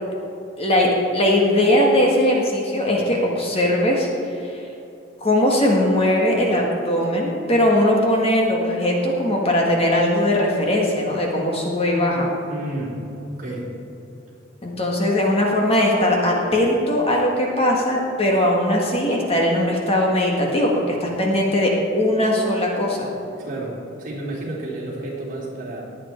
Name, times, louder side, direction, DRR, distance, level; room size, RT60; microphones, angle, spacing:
voice 1, 0.6-4.1 4.4-4.6 5.2-12.3 14.6-23.1, left 1 dB, 30° left, -1 dB, 1.8 m, -20 dB
voice 2, 12.5-13.0 13.4-13.7 23.4-25.8, right 1 dB, 45° right, -4 dB, 3.4 m, -31 dB
19.5 x 8.4 x 4.5 m, 2.9 s
head